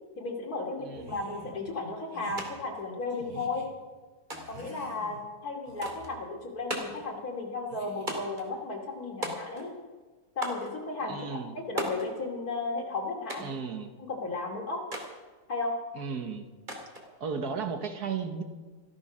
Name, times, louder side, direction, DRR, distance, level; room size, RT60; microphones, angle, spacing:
voice 1, 0.1-3.7 4.5-9.7 10.4-13.5 14.1-14.8 15.5-15.8, left 3 dB, 55° left, 0 dB, 3.2 m, -34 dB
voice 2, 0.8-1.2 11.0-11.6 13.4-13.9 15.9-16.5 17.2-18.4, right 5 dB, 60° right, 7 dB, 1.6 m, -35 dB
sound 1, 0.9-1.6 2.1-2.4 3.1-3.7 4.3-5.3 5.7-6.1 6.7-7.0 7.7-8.3, right 1 dB, 85° right, 3.2 m, -49 dB
sound 2, 2.4-2.5 2.8-3.5 4.3-4.7 5.8-6.1 6.7-7.1 8.1-8.5 9.2-9.8 10.4-10.7 11.8-12.1 13.3-13.6 14.9-15.1 16.7-17.1, right 1 dB, 25° right, 2.7 m, -36 dB
14.5 x 13.5 x 6.2 m, 1.3 s
omnidirectional pair, 1.9 m